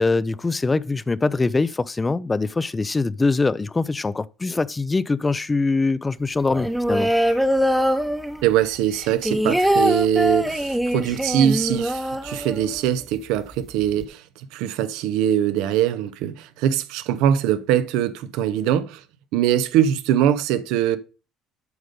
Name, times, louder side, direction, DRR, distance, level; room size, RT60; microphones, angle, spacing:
voice 1, 0.0-7.1, left 3 dB, 15° left, 0.3 m, -23 dB
sound 1, 6.5-8.6 8.9-12.9 13.2-13.3 13.5-14.0, equal, 5° right, 0.8 m, -23 dB
voice 2, 8.4-14.2 14.5-19.0 19.3-21.0, right 10 dB, 90° right, 0.6 m, -22 dB
8.0 x 5.2 x 5.1 m
cardioid pair, 125°, 0 cm